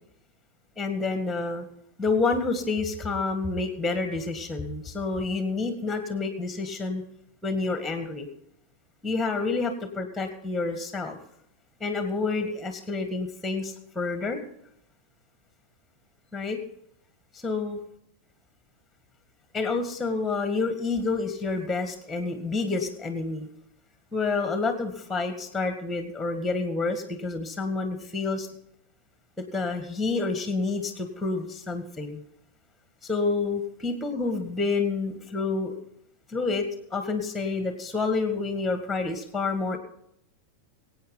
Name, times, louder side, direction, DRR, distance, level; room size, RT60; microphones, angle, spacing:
voice 1, 0.8-1.7 2.0-7.0 7.4-8.3 9.0-9.7 10.0-11.2 11.8-14.4 16.3-16.6 17.3-17.8 19.5-23.5 24.1-28.5 29.5-32.2 33.0-35.7 36.3-39.8, left 3 dB, 5° left, 7 dB, 1.9 m, -28 dB
24.0 x 8.8 x 4.0 m, 0.75 s
figure-of-eight pair, 90°, 0 cm